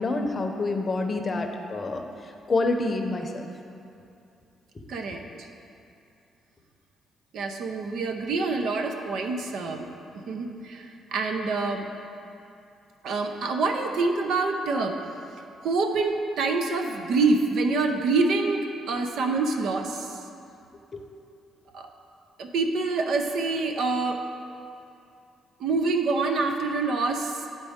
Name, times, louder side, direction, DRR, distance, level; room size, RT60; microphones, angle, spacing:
voice 1, 0.0-2.0 2.5-3.5, left 3 dB, 35° left, 4 dB, 0.7 m, -27 dB
voice 2, 4.9-5.5 7.3-9.9 10.3-11.8 13.0-15.0 15.6-20.2 21.7-21.9 22.4-24.2 25.6-27.4, right 3 dB, 75° right, 4 dB, 0.6 m, -26 dB
11.0 x 4.1 x 3.6 m, 2.6 s
cardioid pair, 90°, 0 cm